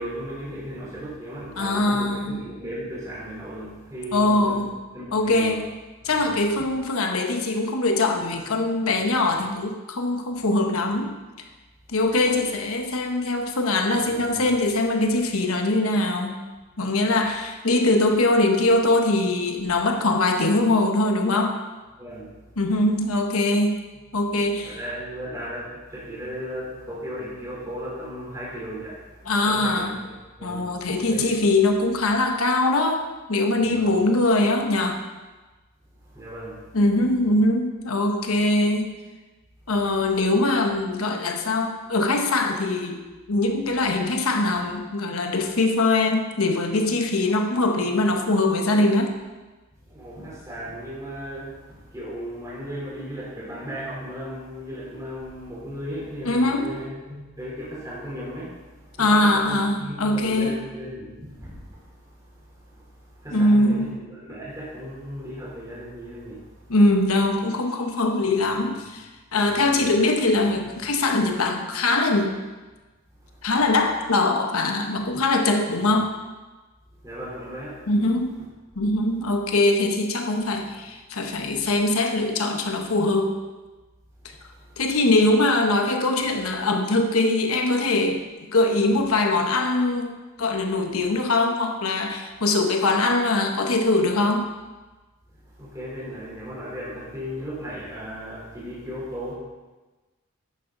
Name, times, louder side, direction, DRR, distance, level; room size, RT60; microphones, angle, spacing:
voice 1, 0.0-4.7 4.9-5.6 6.0-6.7 9.0-9.1 14.0-14.5 22.0-22.3 24.6-31.3 33.6-33.9 36.1-36.7 49.9-61.9 62.2-62.3 62.7-62.9 63.2-66.4 69.3-69.9 70.5-70.7 75.7-76.0 77.0-77.9 95.6-99.3, equal, 15° right, -7 dB, 3.5 m, -36 dB
voice 2, 1.6-2.4 4.1-4.7 5.1-5.7 6.0-11.1 11.9-16.4 16.8-21.6 22.6-23.8 24.1-24.8 29.3-29.9 30.4-35.0 36.7-39.0 39.7-43.0 43.3-49.2 56.2-56.7 59.0-60.6 63.3-64.0 66.7-72.4 73.4-76.2 77.9-78.3 78.8-83.3 84.8-88.2 88.5-94.5, left 2 dB, 90° left, 4 dB, 1.1 m, -22 dB
10.5 x 9.3 x 3.9 m, 1.2 s
head